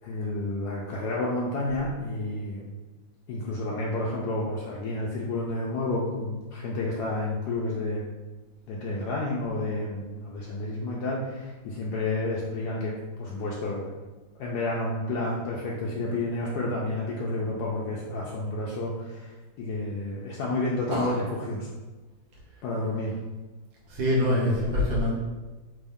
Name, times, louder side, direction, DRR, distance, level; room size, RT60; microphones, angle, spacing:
voice 1, 0.0-2.7 3.3-8.0 8.7-13.9 14.4-21.7 22.6-23.2, left 2 dB, 75° left, -4 dB, 0.9 m, -30 dB
voice 2, 20.9-21.2 23.9-25.2, left 1 dB, 75° right, -5 dB, 1.6 m, -25 dB
3.6 x 2.6 x 3.4 m, 1.2 s
omnidirectional pair, 2.1 m